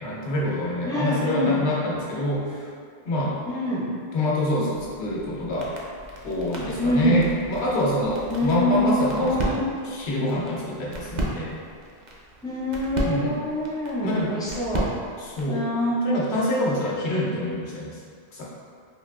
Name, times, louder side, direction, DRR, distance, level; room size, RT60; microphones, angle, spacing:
voice 1, 0.0-2.7 3.0-3.3 4.1-5.7 6.2-11.5 13.0-13.4 14.0-14.3 15.2-15.7 16.0-17.9 18.3-18.4, left 1 dB, 90° left, -5 dB, 1.0 m, -26 dB
voice 2, 0.8-1.6 3.5-3.9 6.8-7.3 8.3-9.6 12.4-14.9 15.5-16.0, equal, 5° left, -8 dB, 0.4 m, -25 dB
sound 1, 4.7-15.6, right 1 dB, 55° right, 0.5 m, -35 dB
3.5 x 2.4 x 2.2 m, 2.2 s
omnidirectional pair, 1.1 m